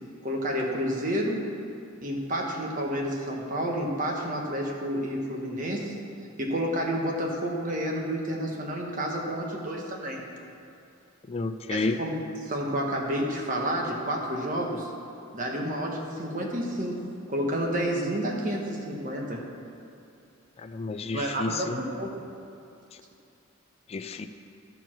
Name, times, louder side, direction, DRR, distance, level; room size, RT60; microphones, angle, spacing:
voice 1, 0.2-1.4 2.0-5.9 6.4-10.2 11.7-14.9 15.3-17.0 17.3-19.4 21.1-21.7 21.9-22.1, equal, 40° right, 0 dB, 1.2 m, -30 dB
voice 2, 11.3-12.0 20.6-21.8 23.9-24.3, left 3 dB, 30° left, 8 dB, 0.3 m, -31 dB
12.0 x 4.6 x 6.0 m, 2.6 s
head